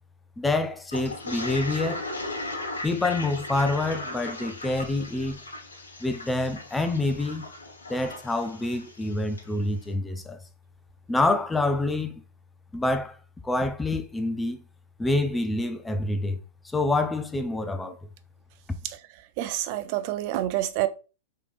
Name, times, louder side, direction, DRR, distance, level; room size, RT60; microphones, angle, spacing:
voice 1, 0.4-2.1 2.8-5.4 6.0-7.4 7.9-10.4 11.1-12.1 12.7-13.2 13.4-14.6 15.0-16.4 16.6-18.0 18.7-18.8, left 2 dB, 10° left, 0.4 m, -27 dB
Toilet flush, 0.9-9.5, left 2 dB, 90° left, 1.1 m, -37 dB
voice 2, 18.8-20.9, right 14 dB, 50° right, 0.4 m, -28 dB
3.3 x 2.9 x 2.5 m
hypercardioid pair, 110°, 0 cm